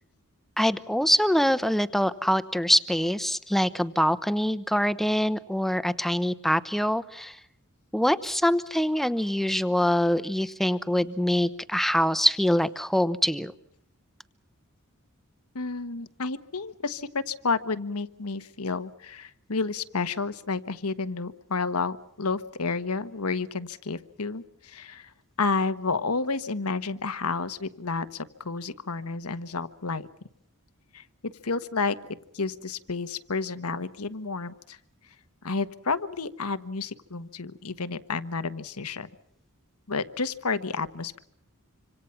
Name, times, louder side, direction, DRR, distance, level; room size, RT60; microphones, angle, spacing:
voice 1, 0.6-7.4 7.9-13.5, equal, ahead, 14 dB, 0.9 m, -24 dB
voice 2, 15.5-25.1 25.4-30.1 30.9-32.0 32.3-34.8 35.4-39.1 39.9-41.2, left 4 dB, 85° left, 11 dB, 1.3 m, -31 dB
26.5 x 26.0 x 5.9 m, 0.71 s
head